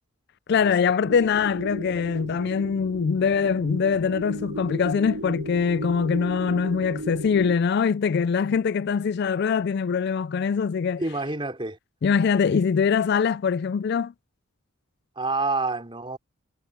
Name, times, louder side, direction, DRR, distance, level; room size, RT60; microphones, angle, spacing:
voice 1, 0.5-11.0 12.0-14.1, left 6 dB, 50° left, 0.3 m, -23 dB
sound 1, 1.0-7.6, right 1 dB, 85° right, 5.6 m, -36 dB
voice 2, 11.0-11.8 15.2-16.2, right 3 dB, 25° right, 3.8 m, -28 dB
head